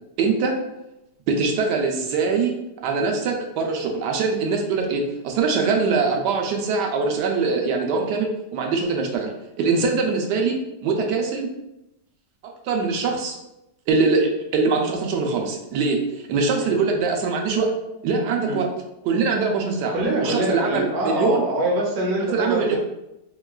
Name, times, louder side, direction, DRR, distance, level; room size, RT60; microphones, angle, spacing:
voice 1, 0.2-0.6 1.3-2.5 2.8-9.3 9.6-11.5 12.4-13.3 13.9-17.7 18.0-18.7 19.0-19.9 20.2-21.4 22.3-22.8, right 4 dB, 85° right, 2 dB, 1.2 m, -23 dB
voice 2, 19.9-22.8, right 1 dB, 55° right, -1 dB, 0.8 m, -24 dB
4.5 x 2.2 x 2.3 m, 0.88 s
omnidirectional pair, 1.8 m